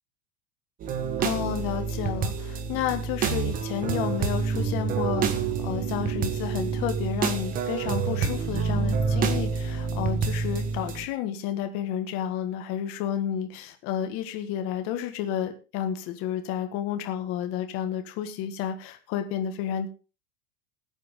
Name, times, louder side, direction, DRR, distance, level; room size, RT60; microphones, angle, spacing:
sound 1, 0.8-11.1, right 5 dB, 25° right, 1.3 m, -28 dB
voice 1, 1.2-19.9, left 10 dB, 40° left, 6 dB, 1.7 m, -31 dB
19.5 x 8.4 x 3.7 m, 0.33 s
supercardioid pair, 170°, 35 cm